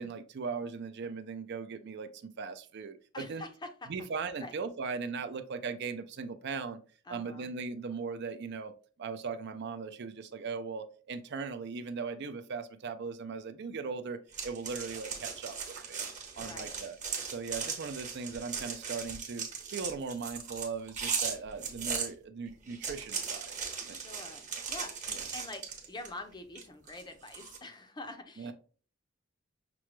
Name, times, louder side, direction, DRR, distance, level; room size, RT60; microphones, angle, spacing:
voice 1, 0.0-2.1 2.4-3.4 3.9-6.8 7.1-8.7 9.0-16.0 16.4-17.0 17.2-19.5 19.7-23.6 23.9-24.0 25.1-25.2 28.4-28.5, right 5 dB, 55° right, 0.4 m, -38 dB
voice 2, 3.1-3.9 4.4-4.5 7.1-7.5 16.3-16.8 23.9-28.5, left 2 dB, 20° left, 0.5 m, -46 dB
sound 1, 14.3-22.1 22.7-26.2 26.6-27.6, right 6 dB, 35° right, 1.0 m, -38 dB
6.0 x 2.2 x 3.0 m
head